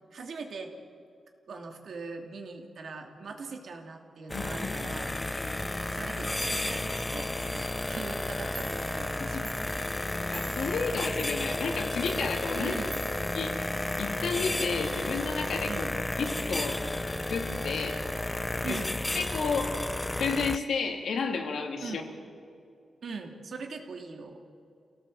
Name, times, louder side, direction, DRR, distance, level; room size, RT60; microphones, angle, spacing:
voice 1, 0.1-0.7 1.5-5.2 5.9-9.6 12.5-13.0 15.6-15.9 18.6-19.0 21.8-22.0 23.0-24.4, right 4 dB, 60° right, 3 dB, 2.6 m, -41 dB
voice 2, 4.3-5.6 9.2-9.4 10.3-12.7 13.3-13.5 14.0-15.7 16.2-16.8 17.3-18.0 18.7-18.8 19.1-19.8 20.2-22.0, left 5 dB, 80° left, 3 dB, 2.7 m, -32 dB
sound 1, 4.3-20.6, left 2 dB, 10° left, 0.5 m, -32 dB
Clock, 8.2-8.3 8.6-14.2, right 2 dB, 35° right, 4.4 m, -48 dB
28.5 x 17.5 x 7.8 m, 2.4 s
wide cardioid pair, 150°, 0 cm